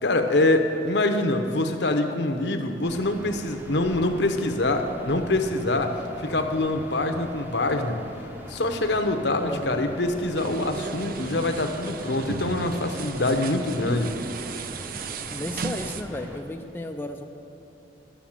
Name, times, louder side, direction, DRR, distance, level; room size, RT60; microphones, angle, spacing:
voice 1, 0.0-8.0 8.5-14.1, left 2 dB, 65° left, 6 dB, 0.8 m, -25 dB
sound 1, 2.8-16.4, equal, 10° right, 0.8 m, -41 dB
voice 2, 9.4-9.8 15.3-17.2, left 1 dB, 10° left, 3 dB, 0.4 m, -34 dB
sound 2, 10.4-16.0, right 5 dB, 50° right, 0.4 m, -36 dB
11.5 x 7.0 x 7.3 m, 3.0 s
head